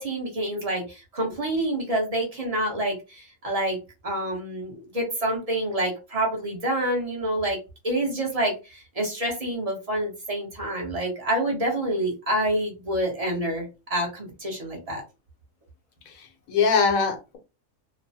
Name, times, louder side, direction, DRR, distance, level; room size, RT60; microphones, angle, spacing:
voice 1, 0.0-3.8 4.0-7.6 7.8-15.0, right 1 dB, 30° right, 0 dB, 0.8 m, -27 dB
voice 2, 16.1-17.4, left 5 dB, 80° left, 4 dB, 1.2 m, -23 dB
3.0 x 2.0 x 2.7 m, 0.29 s
omnidirectional pair, 1.4 m